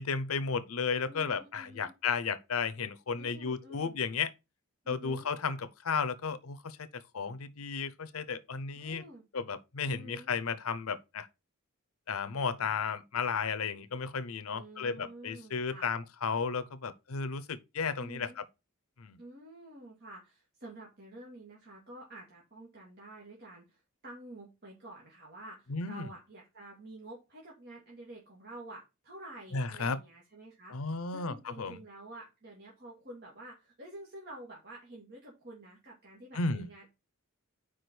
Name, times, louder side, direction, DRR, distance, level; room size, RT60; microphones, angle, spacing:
voice 1, 0.0-4.3 4.9-9.0 9.3-11.3 12.1-18.4 19.0-19.2 25.7-26.1 29.5-30.0 30.7-31.8 36.3-36.7, left 5 dB, 80° left, 0.7 m, -34 dB
voice 2, 1.0-1.9 3.2-4.0 4.8-5.3 8.7-9.2 9.9-10.3 14.5-15.9 18.0-18.4 19.2-36.9, right 1 dB, 50° right, 2.1 m, -49 dB
4.9 x 4.9 x 6.0 m
head